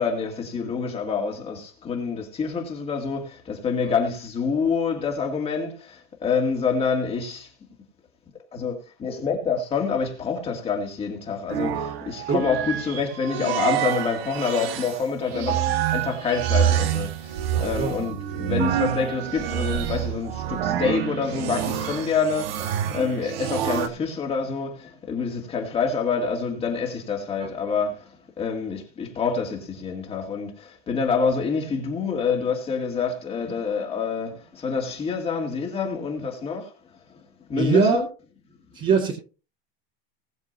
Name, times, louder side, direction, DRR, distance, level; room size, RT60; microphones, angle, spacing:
voice 1, 0.0-7.5 8.5-28.1 28.4-36.7 37.5-38.1, left 5 dB, 20° left, 2.3 m, -27 dB
sound 1, 11.5-23.9, right 10 dB, 70° right, 1.7 m, -27 dB
voice 2, 17.5-17.9 27.4-27.5 37.5-38.0 38.7-39.1, right 5 dB, 25° right, 2.1 m, -21 dB
20.0 x 7.2 x 2.7 m
supercardioid pair, 170°, 31 cm